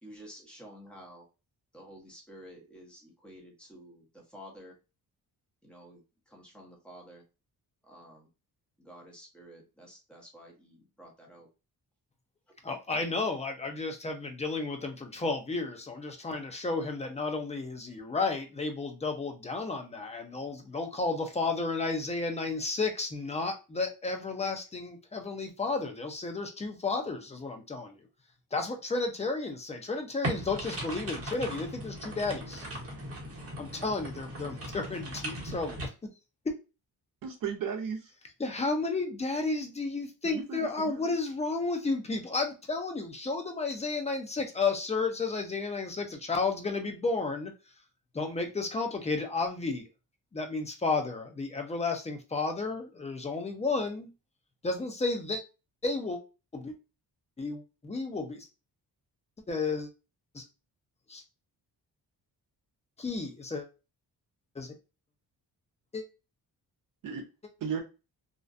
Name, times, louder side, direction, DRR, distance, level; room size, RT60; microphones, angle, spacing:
voice 1, 0.0-1.3 1.7-4.8 5.6-7.2 7.8-8.3 8.8-11.5, equal, 5° left, -1 dB, 0.8 m, -51 dB
voice 2, 12.6-27.9 28.5-32.7 33.6-35.9 38.4-47.5 48.1-49.8 50.3-54.1 54.6-55.4 55.8-56.2 56.5-56.7 57.4-58.5 59.5-59.9 60.3-60.4 61.1-61.2 63.0-63.7 64.6-64.7 65.9-66.0, left 3 dB, 20° left, 4 dB, 0.4 m, -32 dB
sound 1, 30.2-35.9, right 1 dB, 35° right, 0.9 m, -38 dB
voice 3, 37.2-38.1 40.2-41.0 67.0-67.3 67.6-67.8, right 7 dB, 60° right, 4 dB, 0.6 m, -35 dB
2.5 x 2.2 x 2.4 m, 0.30 s
wide cardioid pair, 135°, 39 cm